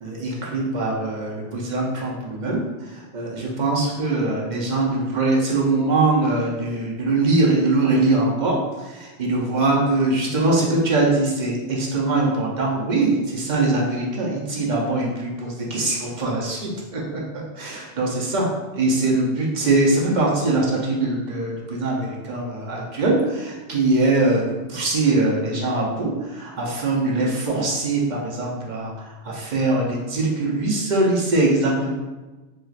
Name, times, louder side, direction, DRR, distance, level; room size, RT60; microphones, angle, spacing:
voice 1, 0.0-18.5 18.7-31.9, right 2 dB, 50° right, -3 dB, 0.6 m, -22 dB
4.4 x 2.4 x 2.4 m, 1.2 s
omnidirectional pair, 1.2 m